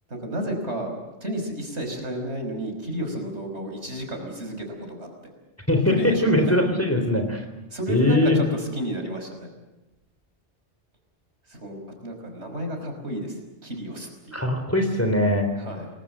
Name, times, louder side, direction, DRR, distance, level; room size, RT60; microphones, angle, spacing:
voice 1, 0.1-5.1 5.9-6.7 7.7-9.5 11.5-14.4 15.6-15.9, right 1 dB, 70° right, 4 dB, 5.6 m, -32 dB
voice 2, 5.7-7.4 7.9-8.4 14.3-15.5, left 1 dB, 10° left, 5 dB, 3.9 m, -21 dB
28.5 x 20.5 x 7.7 m, 1.0 s
omnidirectional pair, 1.2 m